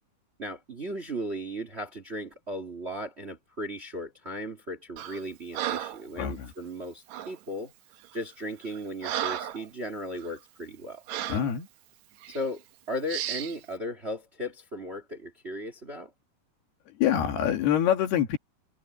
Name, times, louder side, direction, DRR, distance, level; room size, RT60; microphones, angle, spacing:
voice 1, 0.4-7.7 8.1-11.0 12.3-16.1, equal, 25° right, 1.4 m, -36 dB
Breathing, 5.0-5.2 5.5-6.1 7.1-7.4 8.0-8.2 8.6-9.7 10.1-10.3 11.1-11.5 12.2-12.4 13.1-13.6, right 11 dB, 75° right, 1.7 m, -34 dB
voice 2, 6.2-6.5 11.3-11.7 17.0-18.4, left 10 dB, 85° left, 4.1 m, -25 dB
omnidirectional pair, 4.4 m